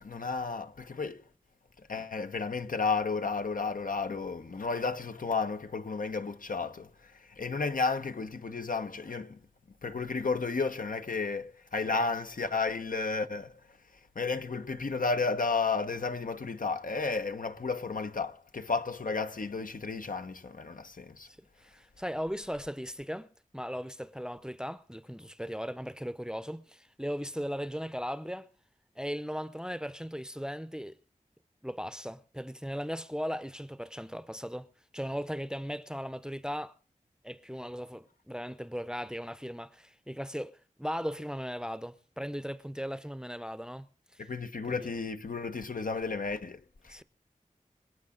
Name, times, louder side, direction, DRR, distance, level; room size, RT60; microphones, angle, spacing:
voice 1, 0.0-1.2 1.8-9.4 9.8-13.6 14.1-21.3 44.2-47.0, left 4 dB, 70° left, 1.1 m, -33 dB
voice 2, 21.3-28.5 29.0-31.0 31.6-34.7 34.9-36.7 37.2-40.5 40.8-43.9 44.1-44.2 44.7-44.9 46.9-47.0, equal, 5° right, 0.7 m, -37 dB
25.5 x 8.7 x 3.9 m
wide cardioid pair, 75°, 14 cm